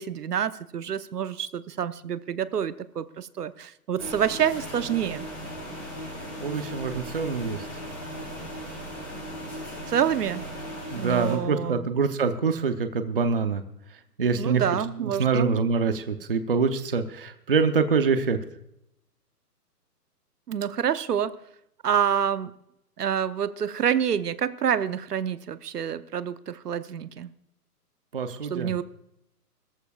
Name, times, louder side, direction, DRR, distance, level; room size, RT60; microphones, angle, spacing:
voice 1, 0.0-5.3 9.9-10.5 11.0-11.9 14.3-15.6 20.5-21.3 21.8-22.5 23.0-27.3 28.5-28.8, right 8 dB, 70° right, 13 dB, 1.0 m, -27 dB
sound 1, 4.0-11.3, equal, 5° left, 3.7 m, -37 dB
voice 2, 6.4-7.6 10.9-13.6 14.2-14.6 15.0-18.4 28.1-28.7, right 5 dB, 35° right, 9 dB, 0.7 m, -25 dB
22.0 x 14.0 x 2.4 m, 0.78 s
hypercardioid pair, 180°, 48 cm